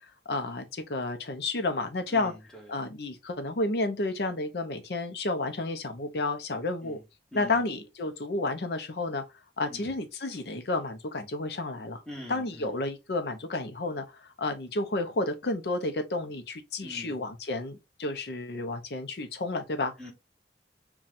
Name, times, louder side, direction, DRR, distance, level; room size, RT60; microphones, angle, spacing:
voice 1, 0.3-2.3 2.7-7.0 7.3-9.2 9.6-12.0 12.3-14.0 14.4-19.9, left 2 dB, 60° left, 0.6 m, -31 dB
voice 2, 2.1-2.8 6.8-7.0 7.3-7.6 9.7-9.9 12.1-12.8 16.8-17.2 20.0-20.1, left 1 dB, 5° left, 1.1 m, -44 dB
5.6 x 2.3 x 2.5 m
head